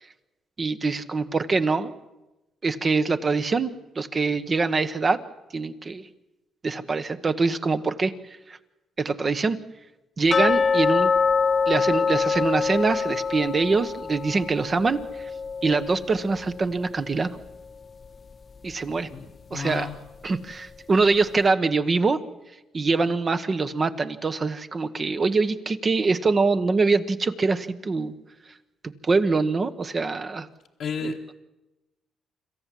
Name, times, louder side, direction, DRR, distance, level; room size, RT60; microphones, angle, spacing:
voice 1, 0.6-1.9 2.6-5.2 5.5-6.0 6.6-8.1 8.5-8.6 9.0-9.6 10.2-11.1 11.7-15.0 15.6-17.4 18.6-19.1 19.5-19.9 20.2-22.2 22.7-28.1 29.0-30.5 31.0-31.1, right 4 dB, 35° right, 11 dB, 1.0 m, -24 dB
sound 1, 10.3-17.2 17.4-17.5 18.1-18.2 18.7-18.8, left 5 dB, 40° left, 0.6 m, -25 dB
voice 2, 19.1-20.0 30.8-31.3, left 7 dB, 65° left, 2 dB, 1.0 m, -33 dB
26.0 x 14.0 x 7.6 m, 1.0 s
cardioid pair, 90°, 0 cm